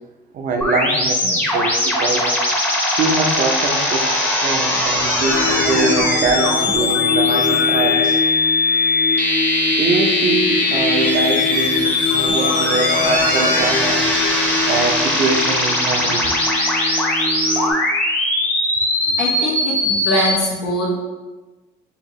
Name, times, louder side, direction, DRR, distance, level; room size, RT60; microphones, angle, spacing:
voice 1, 0.3-2.3 2.9-4.1 4.4-8.2 9.7-14.0 14.7-16.2 19.1-19.2, right 3 dB, 55° right, 3 dB, 0.6 m, -23 dB
sound 1, 0.6-20.3, left 2 dB, 10° left, 0.8 m, -20 dB
Singing, 5.2-17.7, left 3 dB, 60° left, 0.9 m, -24 dB
voice 2, 19.2-20.9, left 1 dB, 80° left, -5 dB, 1.1 m, -22 dB
4.7 x 2.8 x 3.1 m, 1.2 s
cardioid pair, 110°, 17 cm